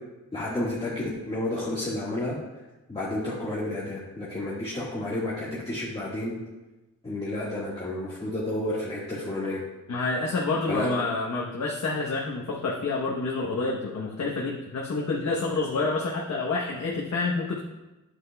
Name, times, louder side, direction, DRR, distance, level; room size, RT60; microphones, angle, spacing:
voice 1, 0.3-2.4 2.9-6.4 7.0-9.6 10.7-10.9, left 1 dB, 15° left, -8 dB, 1.6 m, -31 dB
voice 2, 9.9-17.6, left 3 dB, 55° left, -3 dB, 1.0 m, -28 dB
9.6 x 8.0 x 2.3 m, 1.1 s
cardioid pair, 90°, 32 cm